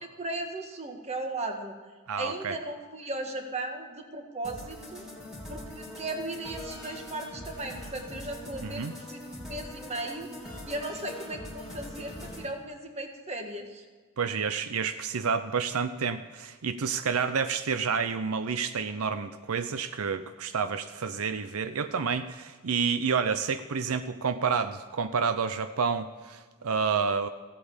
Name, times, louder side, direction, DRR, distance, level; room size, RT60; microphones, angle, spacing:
voice 1, 0.2-1.8 2.2-5.0 5.5-8.8 9.1-9.2 9.5-10.3 10.6-13.8, right 2 dB, 30° right, 4 dB, 1.6 m, -36 dB
voice 2, 2.1-2.6 8.6-8.9 14.2-27.3, right 5 dB, 80° right, 10 dB, 0.6 m, -29 dB
sound 1, 4.4-12.5, left 1 dB, ahead, 3.1 m, -42 dB
15.5 x 8.4 x 7.2 m, 1.4 s
head